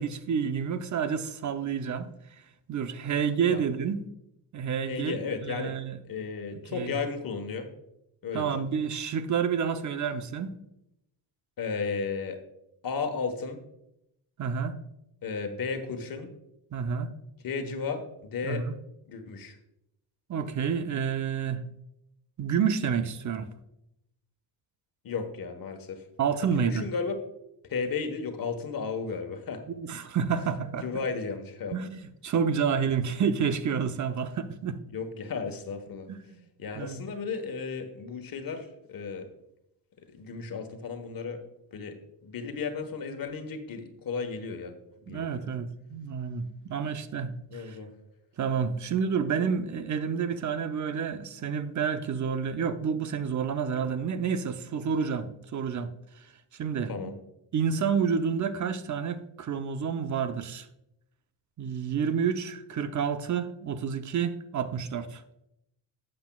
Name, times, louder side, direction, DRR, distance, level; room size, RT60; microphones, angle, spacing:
voice 1, 0.0-2.1 2.7-4.0 4.5-6.0 6.7-7.0 8.3-10.6 14.4-14.8 16.7-17.1 18.4-18.7 20.3-21.6 22.4-23.5 26.2-26.9 29.8-30.9 31.7-34.8 36.1-36.4 36.7-37.0 45.1-47.8 48.4-57.1 57.5-60.7 61.6-65.2, right 6 dB, 40° right, 0.7 m, -29 dB
voice 2, 4.9-5.7 6.0-7.7 8.2-8.5 11.6-12.4 12.8-13.6 15.2-16.3 17.4-18.7 19.1-19.6 25.0-26.0 26.5-27.2 27.7-29.6 30.8-31.8 34.9-36.1 36.6-39.3 40.1-41.4 41.7-42.0 42.2-44.7 45.1-45.5 47.5-47.9 56.9-57.1, left 5 dB, 50° left, 1.3 m, -34 dB
11.5 x 7.6 x 2.3 m
cardioid pair, 95°, 45 cm